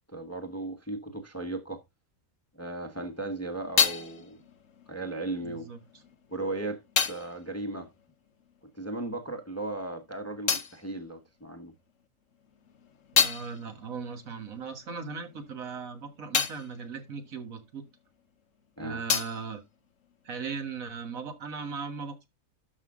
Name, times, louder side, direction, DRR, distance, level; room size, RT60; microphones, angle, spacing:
voice 1, 0.1-1.8 2.5-4.4 4.9-5.7 6.3-7.9 8.8-11.7 18.8-19.0, right 2 dB, 10° left, 1.0 m, -36 dB
sound 1, 3.0-9.0 9.2-11.9 12.3-18.3 18.6-20.6, left 7 dB, 65° left, 1.3 m, -33 dB
voice 2, 5.4-5.8 13.1-17.9 18.8-19.6 20.2-22.3, right 5 dB, 70° right, 1.9 m, -38 dB
12.5 x 5.6 x 3.6 m
omnidirectional pair, 1.5 m